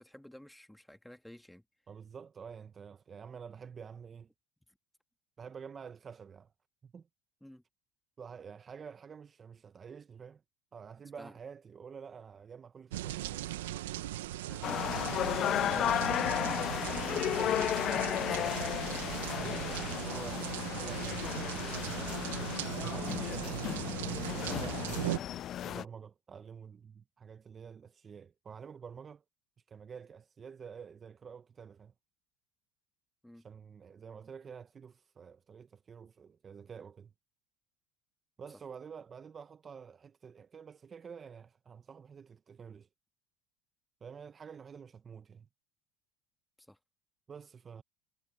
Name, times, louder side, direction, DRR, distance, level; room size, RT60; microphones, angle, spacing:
voice 1, 0.0-1.6 7.4-7.6 11.2-11.4 14.5-15.1 16.1-18.8 33.2-33.5 38.5-38.6 46.6-46.8, left 1 dB, 5° left, 2.0 m, -52 dB
voice 2, 1.9-4.3 5.4-6.5 6.8-7.1 8.2-10.4 10.7-13.5 15.7-16.3 19.4-21.3 21.6-25.2 25.6-29.2 29.7-31.9 33.4-37.1 38.4-42.9 44.0-45.5 47.3-47.8, right 6 dB, 30° right, 1.1 m, -49 dB
sound 1, 12.9-25.2, right 15 dB, 85° right, 0.9 m, -38 dB
sound 2, 14.6-25.8, left 11 dB, 45° left, 0.4 m, -34 dB
hypercardioid pair, 90°, 0 cm